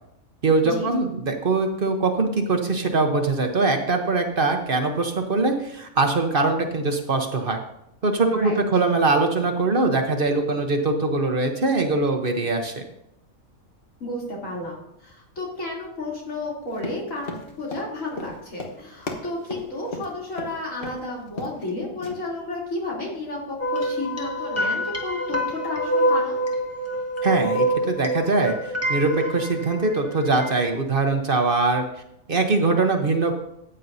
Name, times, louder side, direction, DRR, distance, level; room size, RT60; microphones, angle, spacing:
voice 1, 0.4-7.6 8.0-12.8 27.2-31.8 32.3-33.3, right 3 dB, 45° right, 4 dB, 1.1 m, -22 dB
voice 2, 8.3-8.6 14.0-26.4, left 2 dB, 80° left, -4 dB, 3.5 m, -32 dB
Run, 16.7-20.5 20.8-21.0 21.3-21.7 22.0-22.1, left 2 dB, 45° left, 1.4 m, -35 dB
sound 1, 23.6-30.6, equal, 10° left, 1.5 m, -26 dB
14.0 x 9.1 x 2.7 m, 0.80 s
omnidirectional pair, 1.4 m